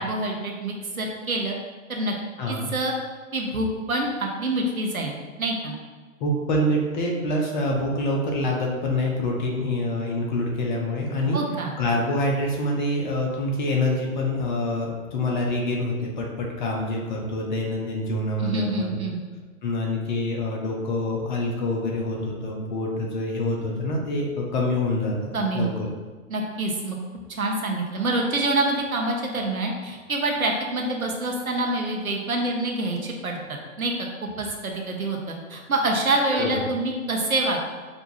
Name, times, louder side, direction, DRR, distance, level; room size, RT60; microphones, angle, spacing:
voice 1, 0.0-1.6 1.9-2.1 2.5-2.9 3.3-5.7 11.3-11.8 18.4-19.2 25.3-25.7 26.3-27.0 27.3-34.1 34.4-37.8, right 2 dB, 85° right, 1 dB, 0.8 m, -26 dB
voice 2, 2.4-2.7 6.2-11.4 11.8-19.0 19.6-25.9 36.4-36.5, left 1 dB, 35° left, -1 dB, 0.7 m, -26 dB
5.0 x 2.3 x 2.7 m, 1.4 s
figure-of-eight pair, 110°, 42 cm